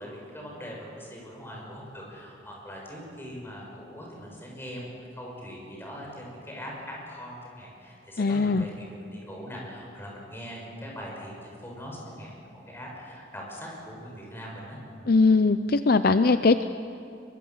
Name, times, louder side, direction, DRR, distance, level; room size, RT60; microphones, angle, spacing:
voice 1, 0.0-15.1, equal, 10° left, -2 dB, 6.2 m, -41 dB
voice 2, 8.2-8.6 15.1-16.6, left 3 dB, 50° left, 11 dB, 0.5 m, -20 dB
23.0 x 23.0 x 7.3 m, 2.8 s
head